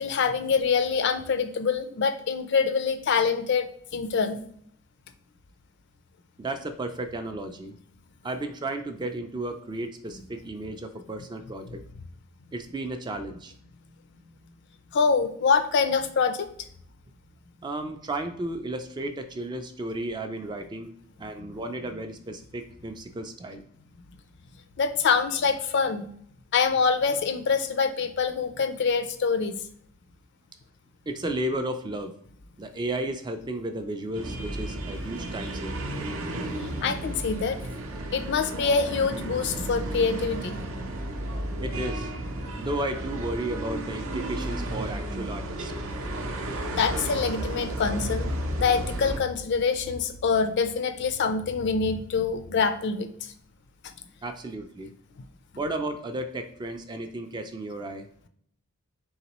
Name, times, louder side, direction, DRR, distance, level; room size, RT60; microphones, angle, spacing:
voice 1, 0.0-4.4 14.9-16.5 21.5-21.6 24.8-26.1 26.5-29.6 36.6-37.6 38.1-40.6 46.7-53.3, left 5 dB, 50° left, 8 dB, 0.4 m, -25 dB
voice 2, 6.4-7.7 8.2-11.8 12.5-13.5 17.6-23.6 31.1-32.1 32.6-35.9 41.6-42.1 42.6-45.7 54.2-54.9 55.6-58.1, right 1 dB, 20° right, 6 dB, 0.3 m, -33 dB
sound 1, 34.1-49.2, right 1 dB, 65° right, 0.6 m, -33 dB
3.9 x 3.6 x 2.9 m, 0.65 s
head